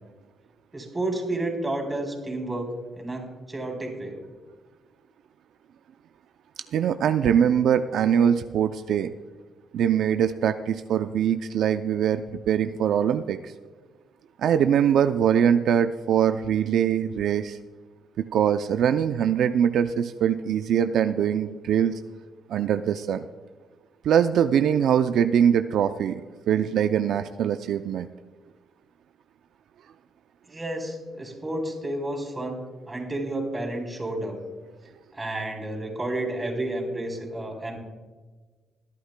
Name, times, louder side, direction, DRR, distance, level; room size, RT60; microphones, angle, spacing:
voice 1, 0.7-4.2 30.5-34.4 35.1-37.8, right 1 dB, 20° right, 2 dB, 3.4 m, -31 dB
voice 2, 6.7-9.1 9.7-13.5 14.4-17.6 18.3-22.0 22.5-23.2 24.0-26.2 26.5-28.1, right 8 dB, 70° right, 9 dB, 0.4 m, -22 dB
21.5 x 11.5 x 2.2 m, 1.4 s
cardioid pair, 90°, 0 cm